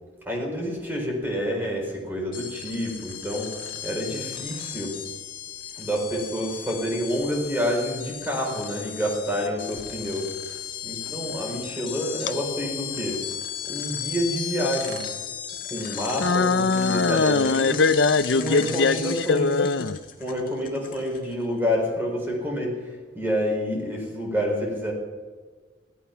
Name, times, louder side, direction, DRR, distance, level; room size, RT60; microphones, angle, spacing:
voice 1, 0.2-5.0 5.8-13.2 13.7-15.1 15.6-17.8 18.4-19.5 20.2-24.9, equal, 10° right, -1 dB, 4.4 m, -28 dB
sound 1, 2.3-21.5, left 9 dB, 50° left, 2.0 m, -36 dB
voice 2, 16.2-20.0, left 4 dB, 65° left, 15 dB, 0.6 m, -21 dB
16.5 x 13.5 x 5.8 m, 1.4 s
head